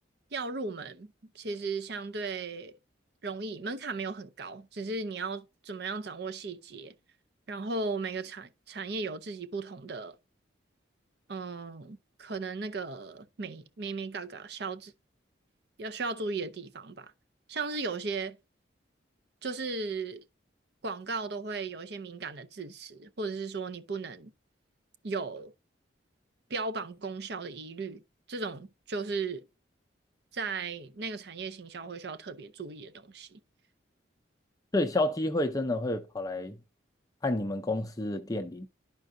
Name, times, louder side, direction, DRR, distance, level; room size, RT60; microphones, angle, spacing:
voice 1, 0.3-2.8 3.2-6.9 7.5-10.2 11.3-14.9 15.8-17.1 17.5-18.4 19.4-20.2 20.8-24.3 25.0-25.5 26.5-28.0 28.3-29.5 30.3-33.4, right 4 dB, 55° right, 0.6 m, -36 dB
voice 2, 34.7-36.6 37.2-38.7, left 2 dB, 20° left, 0.5 m, -29 dB
12.0 x 4.6 x 2.6 m
head